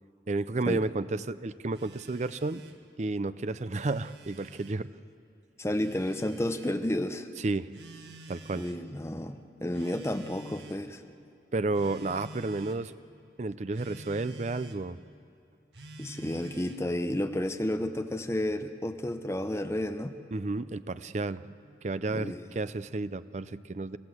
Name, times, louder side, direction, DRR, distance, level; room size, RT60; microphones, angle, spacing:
voice 1, 0.3-2.6 3.0-4.9 7.4-7.7 8.3-8.6 11.5-12.9 13.4-15.0 20.3-21.5 21.8-24.0, right 2 dB, 40° right, 14 dB, 0.5 m, -31 dB
Telephone, 1.7-2.8 3.6-4.8 5.7-6.8 7.7-8.8 9.7-10.9 11.7-12.8 13.7-14.8 15.7-16.9, right 2 dB, 75° right, 1.7 m, -49 dB
voice 2, 5.6-7.3 8.5-11.0 16.0-20.1 22.1-22.5, left 1 dB, 15° left, 7 dB, 0.8 m, -31 dB
29.0 x 15.5 x 7.8 m, 2.5 s
head